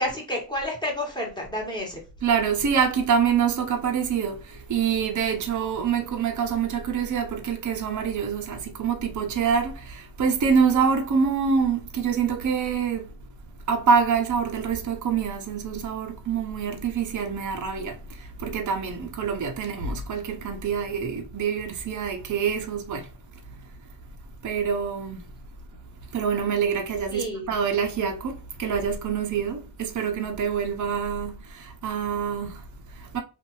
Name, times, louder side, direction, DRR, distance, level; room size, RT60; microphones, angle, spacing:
voice 1, 0.0-2.0 27.1-27.5, left 1 dB, 10° left, 1.4 m, -30 dB
voice 2, 2.2-13.1 13.7-23.1 23.6-23.7 24.4-25.3 26.1-33.2, right 6 dB, 45° right, 0.7 m, -26 dB
2.7 x 2.5 x 3.0 m
cardioid pair, 90°, 43 cm